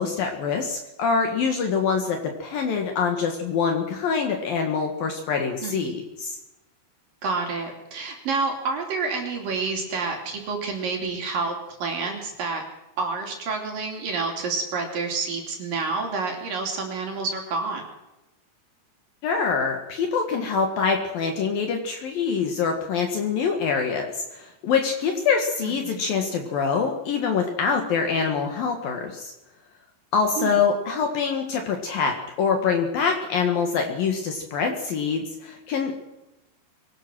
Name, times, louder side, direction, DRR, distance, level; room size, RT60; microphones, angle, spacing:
voice 1, 0.0-6.4 19.2-29.3 30.1-36.0, left 5 dB, 65° left, 3 dB, 3.3 m, -25 dB
voice 2, 5.6-6.0 7.2-12.6 13.0-17.8 25.6-26.0 30.4-30.6, right 4 dB, 55° right, 2 dB, 4.5 m, -29 dB
23.5 x 18.0 x 6.3 m, 0.96 s
omnidirectional pair, 4.8 m